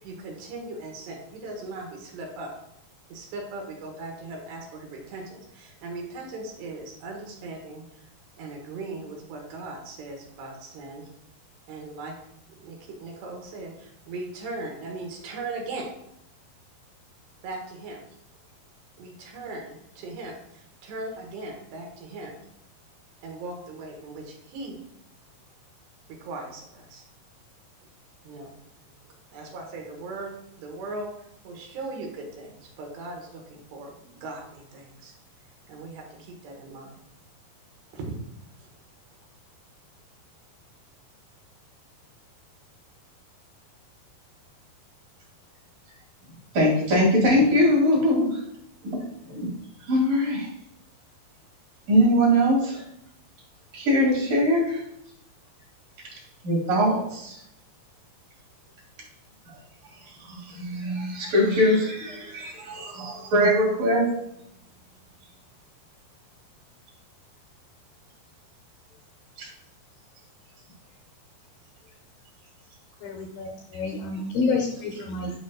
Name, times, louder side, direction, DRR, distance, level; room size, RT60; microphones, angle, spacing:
voice 1, 0.0-2.5 3.1-7.8 8.4-11.1 11.7-12.1 12.5-15.9 17.4-18.0 19.0-22.4 23.2-24.8 26.1-27.0 28.3-28.5 29.3-31.1 31.4-35.1 35.7-37.1 37.9-38.1 38.6-38.7, right 2 dB, 80° right, 1 dB, 3.5 m, -38 dB
voice 2, 46.5-48.4 49.3-49.5 49.9-50.5 51.9-52.8 53.7-54.8 56.4-57.4 60.2-64.0 69.4-69.5, equal, 55° right, -3 dB, 3.6 m, -22 dB
voice 3, 73.0-75.3, left 4 dB, 75° left, 2 dB, 2.1 m, -28 dB
10.5 x 5.5 x 2.3 m, 0.77 s
omnidirectional pair, 4.8 m